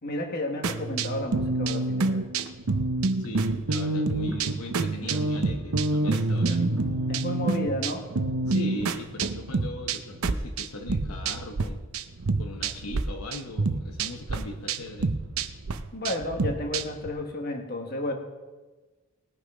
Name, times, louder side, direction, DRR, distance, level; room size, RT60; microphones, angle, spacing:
voice 1, 0.0-2.2 7.1-8.1 15.9-18.1, left 1 dB, 45° left, 3 dB, 1.6 m, -32 dB
sound 1, 0.6-11.7 11.9-13.0 13.3-17.1, right 3 dB, 70° right, 0.7 m, -27 dB
voice 2, 3.2-6.8 8.5-11.8 12.4-15.1, left 2 dB, 75° left, 3 dB, 1.0 m, -39 dB
19.5 x 6.6 x 5.0 m, 1.3 s
head